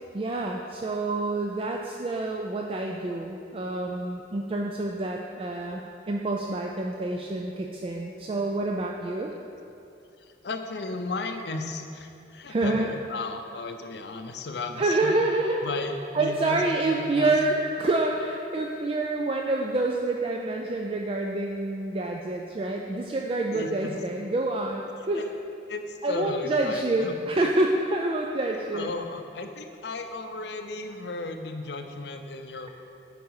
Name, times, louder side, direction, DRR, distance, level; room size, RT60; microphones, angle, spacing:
voice 1, 0.1-9.3 12.5-12.9 14.8-15.9 16.1-25.3 26.0-28.9, right 2 dB, 30° right, 1 dB, 0.3 m, -27 dB
voice 2, 10.2-15.1 15.6-16.6 16.9-17.4 18.5-18.6 23.5-23.9 25.1-25.3 25.7-27.2 28.7-32.7, left 3 dB, 70° left, 6 dB, 0.6 m, -35 dB
8.2 x 5.2 x 4.7 m, 2.6 s
head